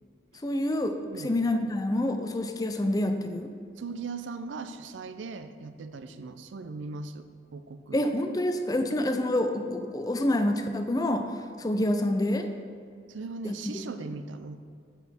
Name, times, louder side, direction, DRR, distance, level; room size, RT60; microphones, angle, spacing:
voice 1, 0.4-3.5 7.9-11.3 11.6-12.5 13.4-13.6, left 1 dB, 20° left, 7 dB, 0.4 m, -27 dB
voice 2, 1.1-1.4 3.8-8.0 13.1-14.6, right 4 dB, 85° right, 10 dB, 0.5 m, -39 dB
8.2 x 5.5 x 4.4 m, 2.3 s
head